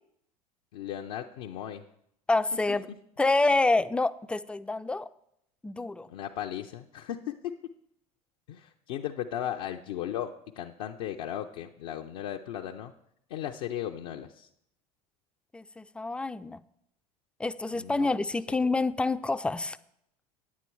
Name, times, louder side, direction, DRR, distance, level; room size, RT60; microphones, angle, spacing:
voice 1, 0.7-1.8 6.1-7.5 8.5-12.9 13.3-14.5 17.7-18.1 18.5-18.6, left 11 dB, 70° left, 0.5 m, -36 dB
voice 2, 2.3-2.9 3.2-5.1 5.6-6.1 15.5-16.6 17.4-19.8, left 3 dB, 5° left, 0.3 m, -27 dB
9.4 x 8.4 x 4.5 m
hypercardioid pair, 80°, 19 cm